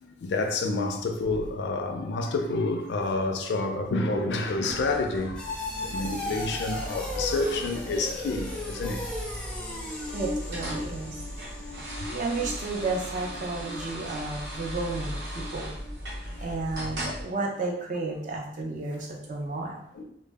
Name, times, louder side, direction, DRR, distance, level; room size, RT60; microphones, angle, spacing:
voice 1, 0.0-5.5 5.8-9.1 12.1-12.2 19.9-20.0, left 2 dB, 70° left, 0.3 m, -29 dB
sound 1, 4.7-17.2, equal, 70° right, 0.8 m, -38 dB
sound 2, 5.3-16.4 16.7-17.1 17.5-17.6, left 2 dB, 5° left, 0.5 m, -38 dB
voice 2, 10.1-11.2 12.1-15.7 16.4-19.8, right 3 dB, 45° right, 0.5 m, -32 dB
2.0 x 2.0 x 3.3 m
head